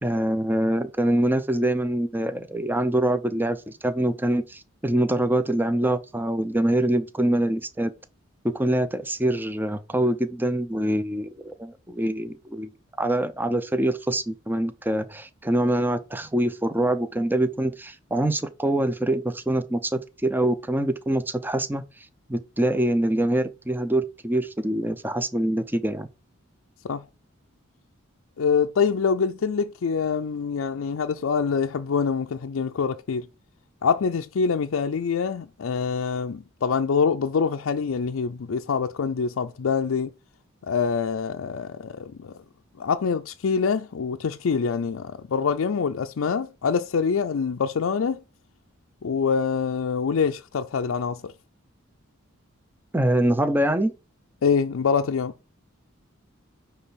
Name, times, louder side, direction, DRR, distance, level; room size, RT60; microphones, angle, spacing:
voice 1, 0.0-7.9 8.4-12.7 13.0-21.8 22.3-26.1 52.9-53.9, right 1 dB, 10° right, 0.6 m, -24 dB
voice 2, 28.4-33.3 33.8-40.1 40.6-42.3 42.8-48.2 49.0-51.3 54.4-55.3, left 6 dB, 80° left, 0.4 m, -25 dB
9.8 x 3.4 x 5.7 m
head